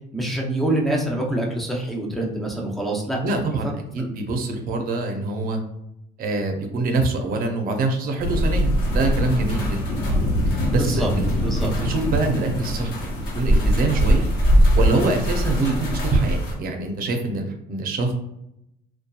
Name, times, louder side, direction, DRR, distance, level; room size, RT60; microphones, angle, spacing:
voice 1, 0.1-3.6 4.0-4.1 10.7-11.1 11.4-12.0, right 1 dB, ahead, -1 dB, 0.6 m, -26 dB
voice 2, 3.2-5.6 6.2-10.0 10.7-11.2 11.6-14.3 14.8-18.1, right 2 dB, 60° right, 4 dB, 0.6 m, -25 dB
sound 1, 8.2-16.5, equal, 75° left, 0.9 m, -21 dB
2.7 x 2.2 x 2.3 m, 0.81 s
cardioid pair, 110°, 17 cm